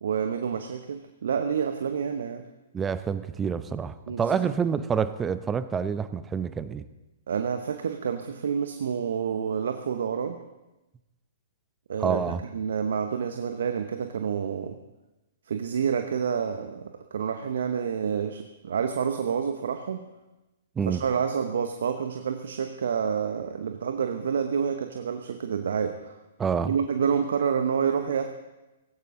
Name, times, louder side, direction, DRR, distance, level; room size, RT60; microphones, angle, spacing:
voice 1, 0.0-2.4 4.1-4.2 7.3-10.4 11.9-14.8 15.5-20.0 20.9-26.2 26.7-28.3, right 7 dB, 65° right, 6 dB, 0.9 m, -28 dB
voice 2, 2.7-6.8 12.0-12.4 20.8-21.0 26.4-26.7, right 6 dB, 15° right, 13 dB, 0.7 m, -27 dB
17.0 x 16.0 x 3.8 m, 1.0 s
figure-of-eight pair, 115°, 0 cm